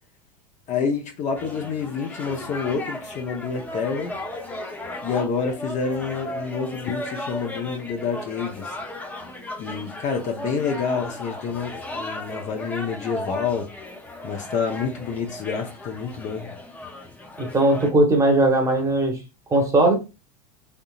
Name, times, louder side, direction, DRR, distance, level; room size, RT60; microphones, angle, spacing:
voice 1, 0.7-4.1 5.0-8.8 9.6-13.7 14.2-16.5, left 5 dB, 40° left, 0.8 m, -28 dB
sound 1, 1.4-17.9, left 1 dB, 10° left, 0.6 m, -35 dB
voice 2, 17.4-19.2 19.5-20.0, right 2 dB, 15° right, 1.0 m, -18 dB
3.5 x 2.7 x 2.4 m
supercardioid pair, 125°, 20 cm